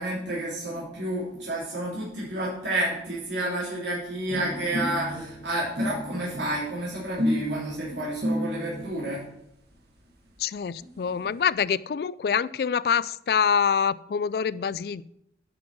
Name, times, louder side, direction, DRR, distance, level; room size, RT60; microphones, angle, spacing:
voice 1, 0.0-9.2, right 1 dB, 80° right, -6 dB, 3.3 m, -30 dB
sound 1, 4.3-8.9 9.7-9.8 10.1-10.2 10.4-10.5 10.7-11.3, left 1 dB, 60° right, 1.8 m, -32 dB
voice 2, 10.4-15.0, left 7 dB, 55° left, 19 dB, 0.3 m, -25 dB
9.9 x 6.1 x 6.0 m, 0.79 s
head